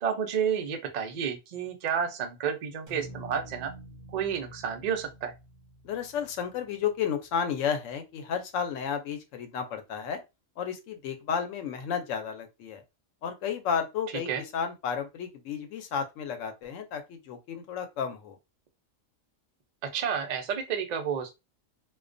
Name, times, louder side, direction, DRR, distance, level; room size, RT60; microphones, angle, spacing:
voice 1, 0.0-3.7 4.1-5.3 14.3-14.4 19.9-21.3, right 7 dB, 75° right, 0.3 m, -30 dB
sound 1, 2.9-7.1, equal, 45° right, 0.7 m, -48 dB
voice 2, 5.8-10.2 10.6-12.8 13.2-18.4, left 7 dB, 70° left, 0.9 m, -32 dB
2.3 x 2.2 x 2.5 m
omnidirectional pair, 1.4 m